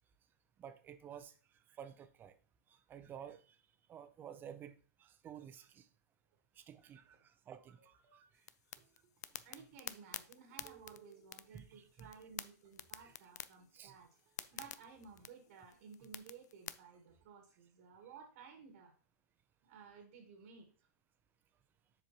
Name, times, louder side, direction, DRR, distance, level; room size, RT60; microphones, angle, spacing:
voice 1, 0.6-1.3 1.7-2.3 2.7-3.6 3.9-5.9 6.6-7.9 11.5-12.1 13.0-13.1 13.7-13.9, right 9 dB, 20° right, 11 dB, 0.6 m, -52 dB
sound 1, 7.5-8.3 8.8-17.3, right 10 dB, 40° right, 1.3 m, -68 dB
sound 2, 8.4-16.7, left 11 dB, 70° left, 0.4 m, -50 dB
voice 2, 9.4-18.9 19.6-20.9, right 6 dB, 60° right, 4 dB, 1.5 m, -56 dB
7.1 x 5.0 x 3.0 m, 0.39 s
hypercardioid pair, 135°, 9 cm